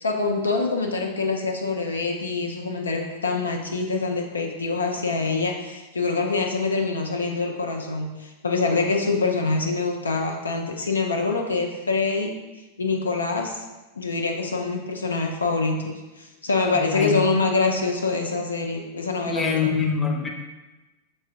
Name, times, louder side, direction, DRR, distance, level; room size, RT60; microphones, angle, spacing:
voice 1, 0.0-12.3 12.8-13.6 14.0-19.7, left 3 dB, 75° left, 2 dB, 0.4 m, -25 dB
voice 2, 16.7-17.1 19.3-20.3, left 6 dB, 15° left, 0 dB, 0.7 m, -24 dB
5.4 x 3.3 x 2.5 m, 1.1 s
figure-of-eight pair, 90°, 0 cm